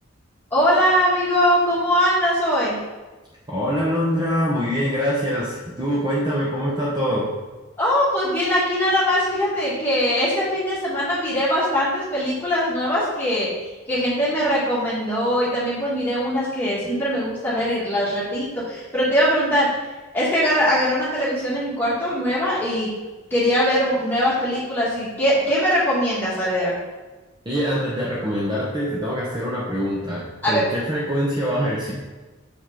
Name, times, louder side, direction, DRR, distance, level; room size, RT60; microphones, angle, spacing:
voice 1, 0.5-2.8 7.8-13.5 13.9-19.7 20.1-22.9 23.3-26.8 30.4-30.8, equal, 10° left, -9 dB, 2.0 m, -21 dB
voice 2, 3.5-7.3 27.4-31.9, equal, 20° right, -6 dB, 0.9 m, -24 dB
6.4 x 5.3 x 3.8 m, 1.2 s
head